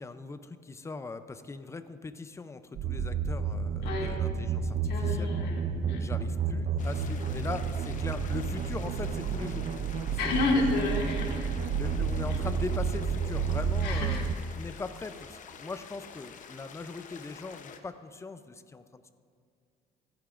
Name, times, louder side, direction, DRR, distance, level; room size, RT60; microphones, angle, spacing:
voice 1, 0.0-5.3 6.0-9.7 10.1-10.6 11.8-19.1, left 3 dB, 15° left, 11 dB, 0.5 m, -40 dB
sound 1, 2.8-14.3, right 6 dB, 50° right, 0.5 m, -31 dB
sound 2, 3.7-12.5, equal, 15° right, 1.0 m, -48 dB
voice 2, 3.8-4.2 4.8-6.1 10.2-11.5 12.3-12.4 13.8-14.2, left 3 dB, 70° left, -1 dB, 2.0 m, -30 dB
sound 3, 6.8-17.8, left 6 dB, 50° left, 0.8 m, -48 dB
15.0 x 10.0 x 2.5 m, 2.3 s
cardioid pair, 110°, 17 cm